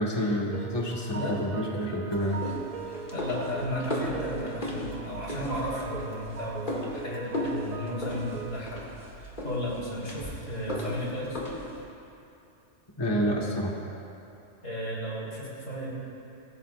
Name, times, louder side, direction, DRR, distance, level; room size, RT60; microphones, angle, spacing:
voice 1, 0.0-2.5 2.9-3.0 13.0-13.8, equal, 20° left, -2 dB, 1.5 m, -28 dB
sound 1, 0.5-8.6, right 5 dB, 60° right, 0.4 m, -41 dB
sound 2, 2.1-11.8, left 1 dB, 40° left, 2.4 m, -37 dB
voice 2, 3.1-8.9 9.2-11.4 14.6-15.9, equal, 85° left, -6 dB, 4.3 m, -34 dB
24.5 x 17.0 x 2.5 m, 2.8 s
omnidirectional pair, 1.3 m